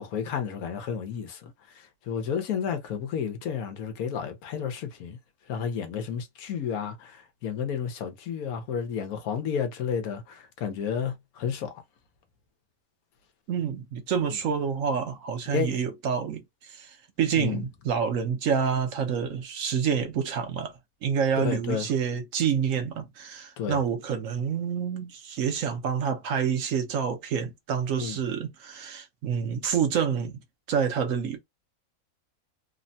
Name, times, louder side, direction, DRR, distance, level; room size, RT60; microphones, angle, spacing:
voice 1, 0.0-5.2 5.5-11.7 15.5-15.7 17.4-17.6 21.4-21.9 23.6-23.8 27.9-28.2, left 7 dB, 85° left, 1.2 m, -31 dB
voice 2, 13.5-20.7 21.0-30.4 30.7-31.4, right 7 dB, 70° right, 1.1 m, -28 dB
3.2 x 2.1 x 2.6 m
omnidirectional pair, 1.5 m